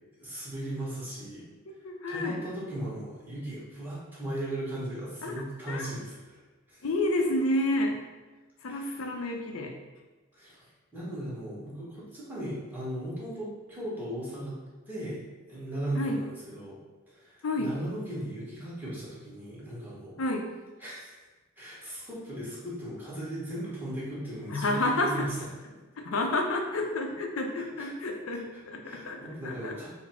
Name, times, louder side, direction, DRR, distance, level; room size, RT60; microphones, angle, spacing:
voice 1, 0.2-1.4 2.1-6.8 8.7-9.0 10.3-10.7 10.9-14.5 14.9-15.2 15.5-16.8 17.1-20.2 20.8-21.2 21.6-25.4 27.6-27.9 28.3-29.9, right 1 dB, 10° right, -8 dB, 1.2 m, -37 dB
voice 2, 1.8-2.4 5.2-5.3 5.7-5.9 6.8-8.0 8.6-9.8 15.9-16.2 17.4-17.7 20.2-20.5 24.5-25.3 26.0-29.9, left 1 dB, 80° left, 3 dB, 0.5 m, -30 dB
4.0 x 2.0 x 4.3 m, 1.3 s
head